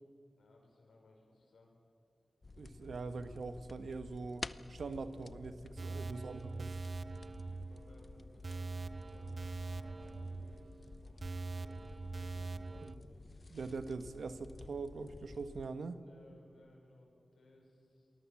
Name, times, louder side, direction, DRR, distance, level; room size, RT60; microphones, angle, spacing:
voice 1, 0.4-1.7 6.1-6.6 7.6-11.8 12.1-13.3 16.0-18.3, left 2 dB, 85° left, 1 dB, 5.4 m, -63 dB
sound 1, 2.4-15.7, left 3 dB, 50° left, 0.7 m, -52 dB
voice 2, 2.6-6.8 12.8-12.9 13.5-16.0, right 4 dB, 80° right, 10 dB, 1.3 m, -43 dB
sound 2, 5.8-13.0, right 3 dB, 50° right, 0.7 m, -43 dB
27.5 x 21.0 x 7.2 m, 2.4 s
cardioid pair, 40°, 0 cm